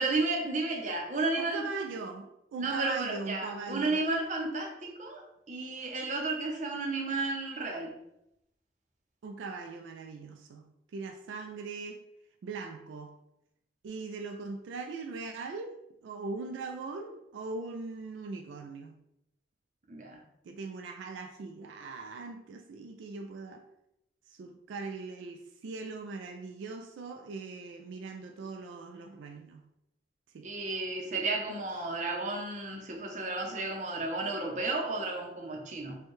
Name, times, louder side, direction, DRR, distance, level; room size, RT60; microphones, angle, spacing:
voice 1, 0.0-1.6 2.6-5.2 5.5-7.9 19.9-20.2 30.4-36.0, right 3 dB, 40° right, 1 dB, 0.6 m, -32 dB
voice 2, 1.3-4.0 9.2-12.0 12.4-13.2 13.8-15.8 16.0-18.9 20.4-23.7 24.3-29.7 30.3-30.5, right 4 dB, 80° right, 5 dB, 0.3 m, -40 dB
4.4 x 2.2 x 3.1 m, 0.85 s
head